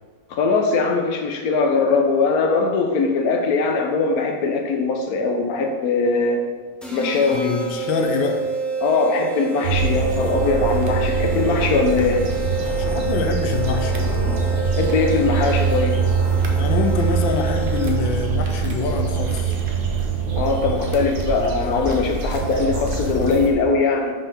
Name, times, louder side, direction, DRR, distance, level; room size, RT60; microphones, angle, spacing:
voice 1, 0.3-6.4 6.9-7.6 8.8-12.2 14.8-16.0 20.4-24.1, left 4 dB, 55° left, 3 dB, 1.3 m, -21 dB
sound 1, 6.8-18.2, right 5 dB, ahead, 0.6 m, -29 dB
voice 2, 7.3-8.5 12.6-14.1 16.6-19.6, left 5 dB, 85° left, 4 dB, 1.5 m, -25 dB
sound 2, 9.6-23.5, right 5 dB, 45° right, 0.7 m, -23 dB
5.7 x 5.7 x 5.7 m, 1.5 s
omnidirectional pair, 2.1 m